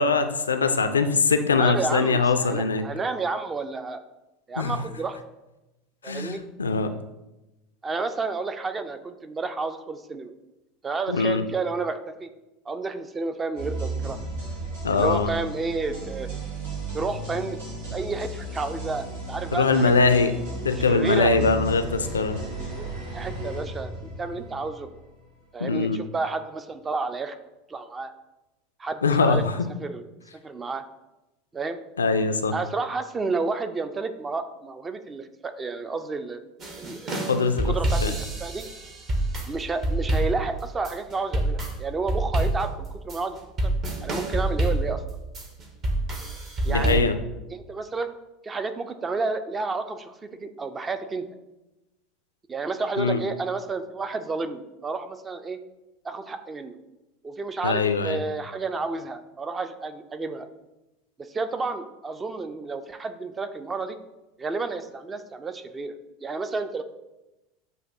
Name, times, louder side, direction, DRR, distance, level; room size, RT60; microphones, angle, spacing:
voice 1, 0.0-2.8 4.6-4.8 6.0-6.9 11.1-11.4 14.8-15.3 19.5-20.3 20.6-22.4 25.6-26.0 29.0-29.7 32.0-32.5 37.3-37.7 38.0-38.1 46.7-47.2 53.0-53.2 57.6-58.2, left 4 dB, 75° left, 9 dB, 0.3 m, -22 dB
voice 2, 1.6-4.0 4.5-5.2 6.0-6.4 7.8-10.3 10.8-12.3 12.7-14.2 14.9-16.3 16.9-17.6 17.9-20.3 20.8-21.3 22.8-22.9 23.1-24.9 25.5-27.4 27.7-28.1 28.8-29.4 29.8-30.1 30.4-30.8 31.5-31.8 32.5-36.4 36.8-37.3 37.6-38.6 39.5-43.4 43.6-43.7 44.0-45.0 46.6-47.0 47.5-48.1 48.4-51.3 52.5-55.6 56.0-56.8 57.2-60.5 61.3-64.0 64.4-65.9 66.2-66.8, right 4 dB, 20° right, 9 dB, 0.4 m, -31 dB
sound 1, 13.6-25.3, right 2 dB, 70° right, 1.5 m, -34 dB
sound 2, 36.6-47.0, right 1 dB, 35° right, 0.9 m, -27 dB
7.7 x 2.6 x 2.7 m, 0.99 s
figure-of-eight pair, 75°, 0 cm